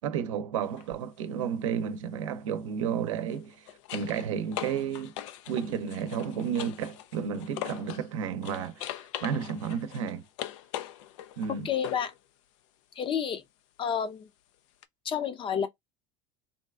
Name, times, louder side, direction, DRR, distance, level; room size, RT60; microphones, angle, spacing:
voice 1, 0.0-5.1 5.5-10.2 11.4-11.7, right 7 dB, 85° right, 0.7 m, -32 dB
sound 1, 0.6-0.9 3.2-8.1 8.4-12.2 14.8-14.9, left 12 dB, 80° left, 0.4 m, -41 dB
voice 2, 11.6-12.1 13.0-13.4 13.8-14.3 15.0-15.7, left 8 dB, 30° left, 0.6 m, -29 dB
3.8 x 2.3 x 2.3 m
supercardioid pair, 100°, 16 cm